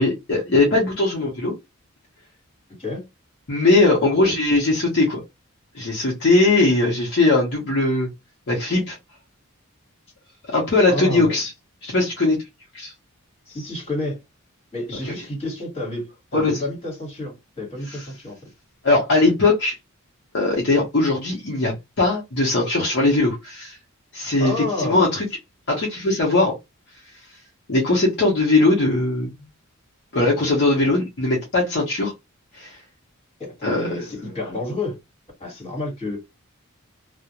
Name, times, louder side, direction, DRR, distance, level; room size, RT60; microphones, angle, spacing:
voice 1, 0.0-1.5 3.5-5.2 5.7-8.1 8.5-9.0 10.5-11.5 11.8-12.4 12.7-12.9 16.3-16.6 17.9-18.0 18.8-19.8 20.3-23.8 24.1-25.3 25.7-26.5 27.7-29.4 30.1-32.1 32.5-32.8 33.6-34.1, left 2 dB, 50° left, 0.7 m, -20 dB
voice 2, 10.9-11.4 13.5-14.2 14.7-18.4 24.4-25.1 33.4-35.0 35.4-36.2, left 2 dB, 30° left, 1.4 m, -29 dB
2.3 x 2.1 x 2.8 m
head